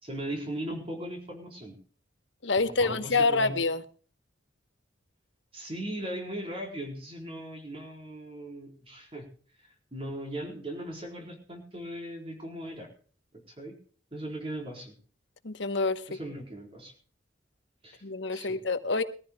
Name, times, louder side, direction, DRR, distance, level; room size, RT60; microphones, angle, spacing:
voice 1, 0.0-1.8 2.7-3.6 5.5-9.3 9.6-12.9 13.5-13.8 14.1-15.0 16.1-16.9 17.8-18.0 18.3-18.6, right 1 dB, 30° right, 4.2 m, -38 dB
voice 2, 2.4-3.8 15.4-16.2 18.0-19.0, left 3 dB, 75° left, 1.1 m, -27 dB
22.0 x 14.0 x 2.3 m
head